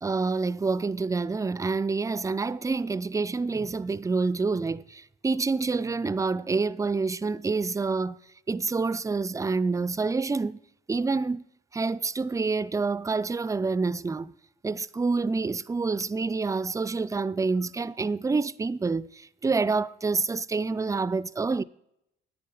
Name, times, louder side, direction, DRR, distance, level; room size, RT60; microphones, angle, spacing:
voice 1, 0.0-8.2 8.5-10.6 10.9-11.4 11.7-14.3 14.6-21.6, right 4 dB, 15° right, 0.4 m, -27 dB
9.5 x 9.3 x 5.3 m
cardioid pair, 90°, 20 cm